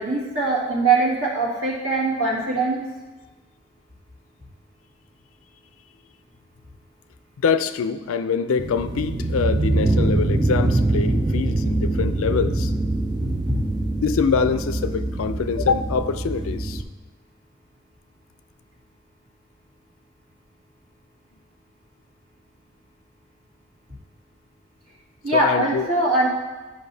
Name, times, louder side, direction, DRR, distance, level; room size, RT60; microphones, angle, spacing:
voice 1, 0.0-2.8 13.3-13.6 25.2-26.3, right 3 dB, 90° right, -6 dB, 1.9 m, -22 dB
voice 2, 7.4-12.7 14.0-16.8 25.3-25.9, left 5 dB, 80° left, 11 dB, 0.4 m, -24 dB
sound 1, 8.6-16.8, right 2 dB, 20° right, 0.4 m, -23 dB
10.0 x 5.3 x 2.7 m, 1.2 s
head